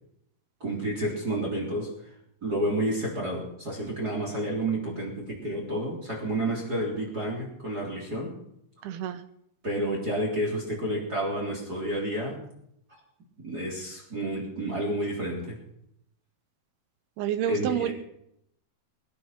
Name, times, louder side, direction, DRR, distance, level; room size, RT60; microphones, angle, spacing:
voice 1, 0.6-1.9 2.4-8.3 9.6-12.4 13.4-15.6 17.5-17.9, right 1 dB, 25° right, -1 dB, 3.7 m, -30 dB
voice 2, 8.8-9.2 17.2-17.9, right 11 dB, 90° right, 9 dB, 3.0 m, -28 dB
22.5 x 10.5 x 5.9 m, 0.76 s
omnidirectional pair, 4.4 m